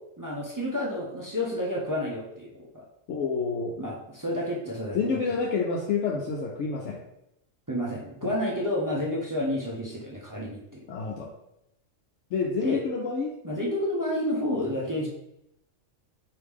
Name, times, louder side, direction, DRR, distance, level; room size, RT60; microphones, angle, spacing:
voice 1, 0.2-2.8 3.8-5.3 7.7-10.8 12.6-12.8 13.4-15.1, left 1 dB, 25° right, -3 dB, 0.4 m, -30 dB
voice 2, 3.1-3.7 4.9-7.0 8.2-8.3 10.9-11.3 12.3-13.3, left 5 dB, 70° left, -1 dB, 0.9 m, -28 dB
4.7 x 2.7 x 3.5 m, 0.82 s
omnidirectional pair, 1.3 m